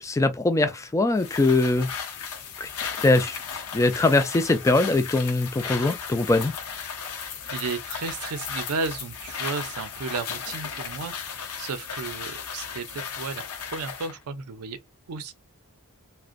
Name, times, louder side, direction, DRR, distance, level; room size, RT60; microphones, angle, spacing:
voice 1, 0.0-1.9 2.6-2.7 3.0-6.5, left 2 dB, 15° left, 0.3 m, -22 dB
sound 1, 1.2-14.2, left 6 dB, 85° left, 0.7 m, -35 dB
voice 2, 7.5-14.8 15.1-15.3, right 4 dB, 75° right, 0.5 m, -34 dB
2.4 x 2.1 x 2.5 m
head